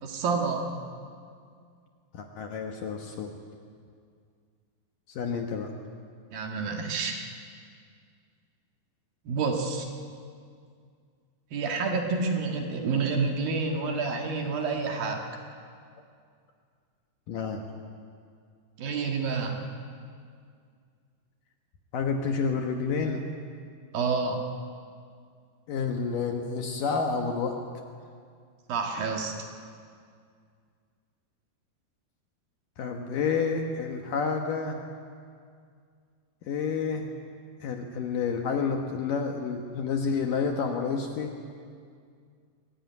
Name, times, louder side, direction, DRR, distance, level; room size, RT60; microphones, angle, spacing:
voice 1, 0.0-0.6 6.3-7.2 9.3-9.9 11.5-15.2 18.8-19.6 23.9-24.4 28.7-29.3, right 4 dB, 60° right, 2 dB, 3.1 m, -28 dB
voice 2, 2.1-3.3 5.1-5.7 17.3-17.6 21.9-23.2 25.7-27.5 32.8-34.8 36.4-37.1 37.6-41.4, left 5 dB, 65° left, 3 dB, 2.4 m, -29 dB
23.0 x 16.5 x 9.5 m, 2.2 s
omnidirectional pair, 5.0 m